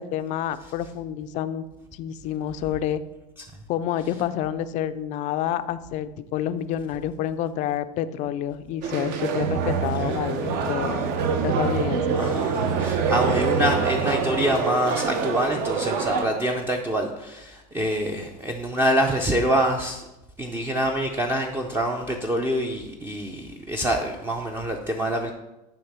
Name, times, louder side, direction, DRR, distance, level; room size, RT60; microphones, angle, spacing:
voice 1, 0.0-1.6 1.9-3.0 3.7-11.0 11.4-12.2, left 10 dB, 40° left, 12 dB, 0.4 m, -28 dB
sound 1, 8.8-16.3, right 5 dB, 50° right, 0.8 m, -26 dB
sound 2, 9.3-14.5, right 6 dB, 80° right, 1.1 m, -29 dB
voice 2, 12.1-20.0 20.4-25.3, equal, 10° right, 2 dB, 0.5 m, -26 dB
9.9 x 3.5 x 6.0 m, 0.97 s
supercardioid pair, 150°, 19 cm